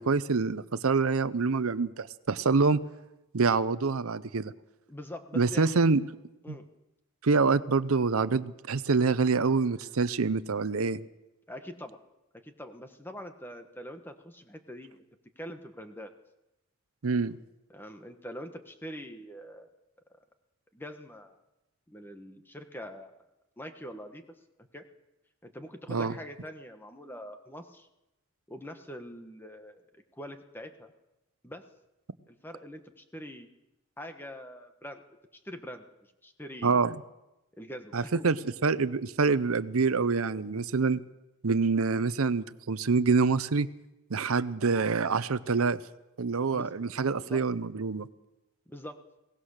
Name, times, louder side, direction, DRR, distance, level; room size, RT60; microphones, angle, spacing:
voice 1, 0.0-2.8 3.3-4.5 5.3-6.0 6.5-6.6 7.2-11.0 17.0-17.4 25.9-26.1 36.6-36.9 37.9-38.4 38.6-41.0 41.4-43.7 44.1-45.8 46.2-48.1, right 4 dB, 70° right, 14 dB, 0.7 m, -26 dB
voice 2, 4.9-5.8 6.4-6.7 11.5-12.0 12.4-15.0 15.4-16.1 17.7-19.7 20.7-21.4 21.9-23.1 23.6-24.2 24.7-24.8 25.4-27.9 28.5-29.8 30.1-30.9 31.4-31.7 32.3-33.5 34.0-35.0 35.3-36.8 37.6-38.3 46.5-46.7 47.2-47.4 48.7-49.0, equal, 10° left, 7 dB, 1.3 m, -44 dB
22.0 x 18.0 x 6.6 m, 0.95 s
head